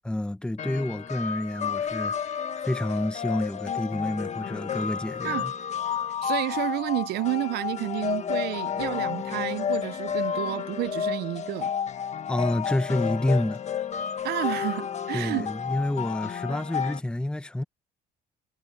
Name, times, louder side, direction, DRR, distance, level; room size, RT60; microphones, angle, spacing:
voice 1, 0.1-5.5 12.3-13.6 15.1-17.6, left 1 dB, 5° left, 1.0 m, -29 dB
sound 1, 0.6-17.0, left 7 dB, 40° left, 1.4 m, -31 dB
voice 2, 6.2-11.7 14.2-15.5, right 18 dB, 75° right, 0.7 m, -30 dB
cardioid pair, 110°, 17 cm